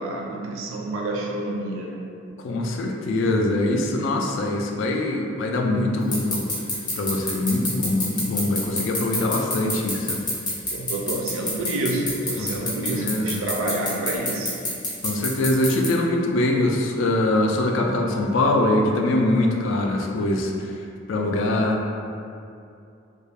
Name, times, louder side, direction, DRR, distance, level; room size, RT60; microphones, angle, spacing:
voice 1, 0.0-2.0 8.7-8.9 9.2-9.3 10.7-14.5, right 2 dB, 90° right, -1 dB, 0.3 m, -28 dB
voice 2, 2.4-6.5 7.0-10.2 12.4-13.4 15.0-20.8 21.1-21.8, left 2 dB, 70° left, 2 dB, 0.3 m, -23 dB
sound 1, 6.1-15.9, left 2 dB, 20° left, 0.6 m, -26 dB
2.3 x 2.2 x 3.2 m, 2.5 s
head